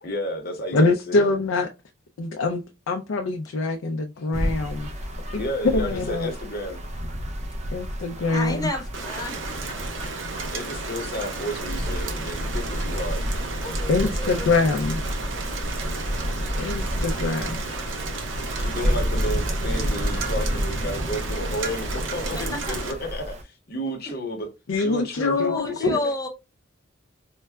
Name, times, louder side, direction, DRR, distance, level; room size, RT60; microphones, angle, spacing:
voice 1, 0.0-1.3 5.0-6.8 10.5-13.2 14.0-14.1 18.6-24.5 24.8-26.0, equal, 50° left, 0.8 m, -32 dB
voice 2, 0.7-1.7 2.2-4.9 5.3-5.4 5.7-6.3 7.7-8.7 13.9-15.0 16.5-17.6 24.7-26.0, left 3 dB, 90° left, 0.4 m, -24 dB
sound 1, 4.3-23.4, equal, 35° right, 0.5 m, -30 dB
voice 3, 8.3-9.4 13.6-14.5 18.4-18.5 22.3-22.8 25.4-26.3, left 2 dB, 20° left, 0.6 m, -31 dB
Rain, 8.9-22.9, right 4 dB, 70° right, 0.7 m, -34 dB
4.5 x 2.1 x 2.2 m
head